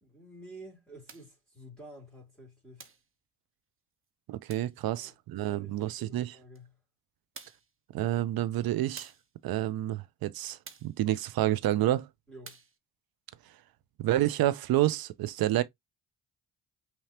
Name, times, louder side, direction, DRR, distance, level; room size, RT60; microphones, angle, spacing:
voice 1, 0.0-2.9 4.9-6.7 12.3-12.6, right 1 dB, ahead, 3.0 m, -51 dB
sound 1, 1.1-1.4 2.8-3.1 4.5-4.8 6.5-6.6 7.3-7.7 9.0-9.3 10.6-11.0 12.4-12.8, right 5 dB, 30° right, 1.2 m, -49 dB
voice 2, 4.3-6.4 7.9-9.1 9.4-12.1 14.0-15.6, right 14 dB, 65° right, 0.8 m, -29 dB
5.8 x 3.2 x 2.8 m
hypercardioid pair, 50°, 39 cm